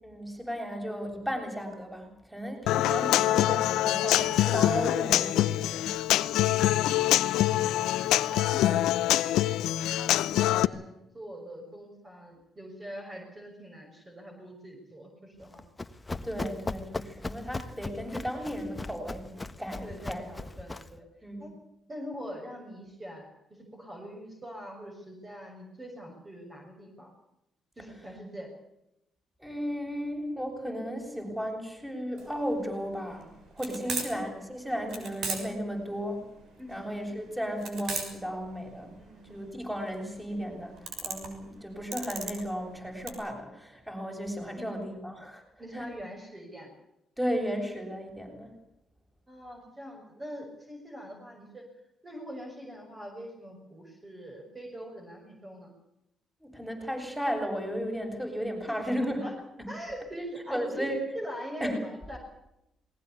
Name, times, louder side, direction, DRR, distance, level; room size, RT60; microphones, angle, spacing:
voice 1, 0.0-5.9 16.2-20.3 21.2-21.5 29.4-36.2 36.7-39.0 39.2-45.4 45.7-45.9 47.2-48.5 56.4-59.3 60.5-61.0 61.6-61.8, equal, 5° right, 2 dB, 7.8 m, -34 dB
Human voice / Acoustic guitar, 2.7-10.6, left 14 dB, 90° left, 0.8 m, -25 dB
voice 2, 7.7-9.4 9.9-15.6 19.8-21.0 21.4-21.5 21.9-23.3 23.6-27.1 27.8-28.5 34.0-34.1 36.6-36.9 39.0-39.3 44.6-44.8 45.6-46.7 49.3-51.6 52.0-55.7 59.2-59.3 59.7-60.9 61.1-62.2, equal, 25° right, 1 dB, 6.4 m, -43 dB
Run, 15.4-21.0, left 2 dB, 20° left, 1.3 m, -39 dB
sound 1, 32.2-43.1, right 4 dB, 70° right, 6.3 m, -38 dB
20.5 x 19.5 x 8.5 m, 0.85 s
cardioid pair, 90°, 0 cm